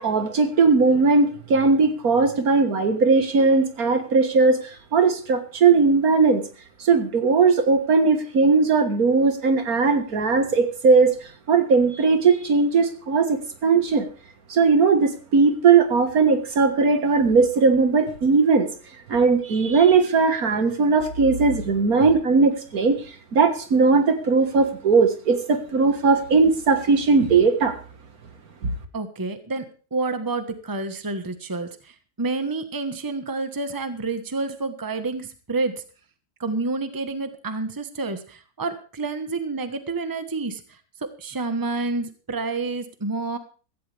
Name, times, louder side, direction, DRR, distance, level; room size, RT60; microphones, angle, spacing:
voice 1, 0.0-4.6 4.9-6.4 6.8-11.1 11.5-14.1 14.5-18.7 19.1-23.0 23.3-27.7 28.6-28.7, right 4 dB, 70° right, 8 dB, 2.0 m, -18 dB
voice 2, 28.9-29.6 29.9-35.8 36.4-40.6 41.2-43.4, right 3 dB, 15° right, 9 dB, 1.2 m, -29 dB
16.0 x 15.0 x 3.4 m, 0.37 s
omnidirectional pair, 1.6 m